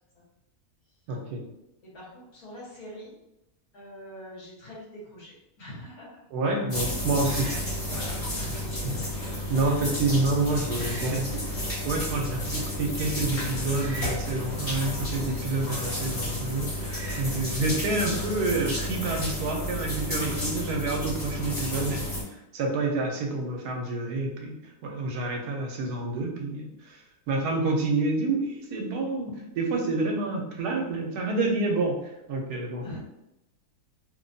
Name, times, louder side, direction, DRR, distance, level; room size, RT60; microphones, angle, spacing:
voice 1, 1.1-1.4 6.3-7.5 8.5-11.5 11.8-22.0 22.5-24.5 24.8-27.0 27.3-32.0 32.3-32.8, right 2 dB, 85° right, 1 dB, 1.1 m, -28 dB
voice 2, 1.9-3.1 3.7-6.1 7.3-7.5 7.9-8.5 9.6-10.0 32.8-33.0, equal, 70° left, -5 dB, 1.5 m, -44 dB
sound 1, 6.7-22.2, left 1 dB, 40° left, 1.4 m, -32 dB
sound 2, 7.0-19.3, right 3 dB, 65° right, 0.7 m, -49 dB
3.2 x 2.2 x 2.5 m, 0.88 s
omnidirectional pair, 1.7 m